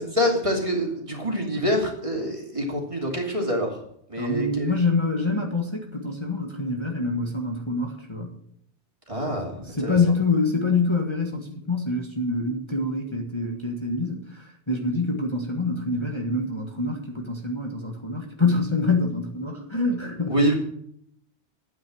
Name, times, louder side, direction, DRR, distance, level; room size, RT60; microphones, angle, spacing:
voice 1, 0.0-3.8 4.1-4.7 9.1-10.0 20.3-20.5, equal, 30° right, 0 dB, 2.9 m, -26 dB
voice 2, 4.2-8.3 9.2-9.4 9.8-20.3, left 3 dB, 25° left, 0 dB, 1.6 m, -26 dB
12.0 x 9.2 x 6.3 m, 0.68 s
omnidirectional pair, 1.1 m